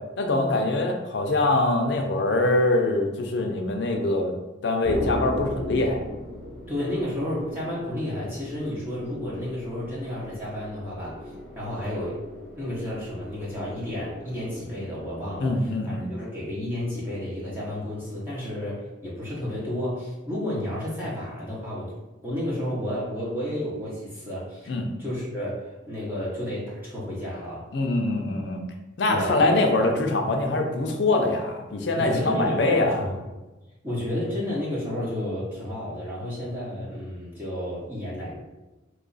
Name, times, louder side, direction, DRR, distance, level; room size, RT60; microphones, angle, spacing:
voice 1, 0.2-4.3 4.6-6.0 15.4-16.1 24.7-24.9 27.7-28.6 29.0-32.9, left 2 dB, 60° left, 4 dB, 0.5 m, -23 dB
sound 1, 4.8-15.5, equal, 35° right, 1.4 m, -38 dB
voice 2, 6.7-11.2 11.5-12.2 12.6-21.9 22.2-24.7 25.0-27.7 29.1-29.7 32.0-33.2 33.8-38.3, left 1 dB, 10° right, -8 dB, 0.7 m, -31 dB
3.0 x 2.3 x 3.9 m, 1.1 s
head